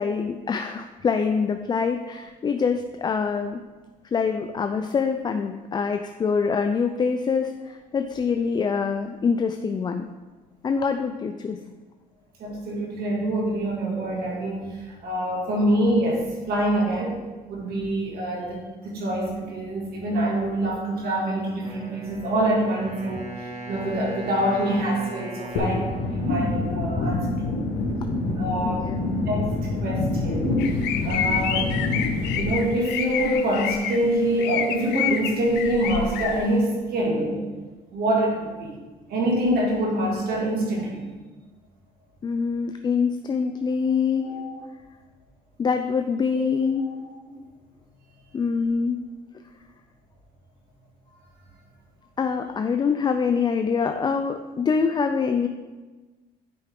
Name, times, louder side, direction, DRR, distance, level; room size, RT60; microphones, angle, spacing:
voice 1, 0.0-3.6 4.1-10.1 10.6-11.6 28.6-29.0 42.2-44.4 45.6-46.8 48.3-49.0 52.2-55.5, left 5 dB, 25° left, 7 dB, 0.4 m, -25 dB
voice 2, 12.4-17.2 17.5-27.6 28.3-28.8 29.3-31.7 32.3-37.5 37.9-38.8 39.1-41.0 44.2-44.6 46.7-46.9, right 1 dB, 65° right, -3 dB, 2.3 m, -25 dB
Wind instrument woodwind instrument, 21.6-27.6, right 2 dB, 35° right, 2.1 m, -39 dB
sound 1, 25.6-32.5, left 2 dB, 70° left, 1.1 m, -26 dB
sound 2, 30.6-34.0 34.4-36.4, left 9 dB, 90° left, 0.6 m, -28 dB
9.8 x 4.7 x 3.6 m, 1.3 s
cardioid pair, 110°, 17 cm